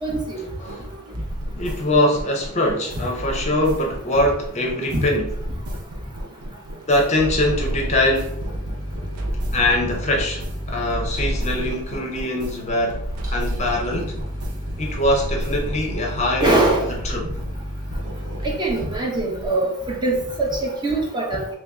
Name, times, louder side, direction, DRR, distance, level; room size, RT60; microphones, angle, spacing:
voice 1, 0.0-0.4 4.9-5.0 16.4-16.9 18.4-21.5, right 2 dB, 20° right, -2 dB, 0.7 m, -22 dB
sound 1, 0.7-19.6, right 1 dB, 70° right, 0.6 m, -32 dB
voice 2, 1.6-5.3 6.9-8.4 9.5-14.2 14.8-16.8 17.0-17.3, left 1 dB, 30° left, 1 dB, 0.6 m, -22 dB
sound 2, 7.2-18.8, equal, 90° right, 1.2 m, -33 dB
3.1 x 2.7 x 3.4 m, 0.69 s
head